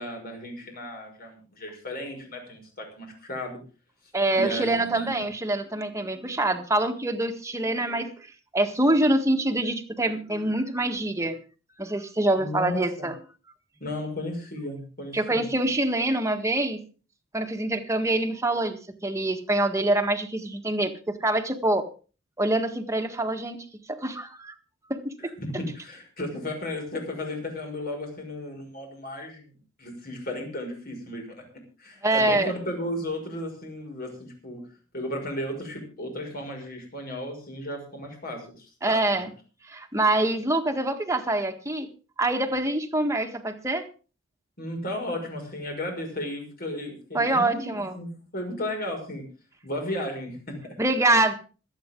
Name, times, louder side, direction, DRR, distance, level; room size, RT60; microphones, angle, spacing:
voice 1, 0.0-3.6 4.3-5.1 12.4-13.1 13.8-15.5 25.2-29.5 29.8-31.4 31.8-34.6 34.9-39.3 44.6-49.2 49.6-50.8, left 1 dB, 50° left, 2 dB, 5.9 m, -34 dB
voice 2, 4.1-8.1 8.5-11.4 11.8-13.2 15.1-16.8 17.3-21.9 22.4-23.6 23.9-24.5 24.9-25.3 32.0-32.5 38.8-39.3 39.7-41.9 42.2-43.9 47.1-48.0 50.8-51.3, right 2 dB, 15° right, 5 dB, 1.7 m, -25 dB
26.0 x 8.8 x 3.8 m, 0.36 s
head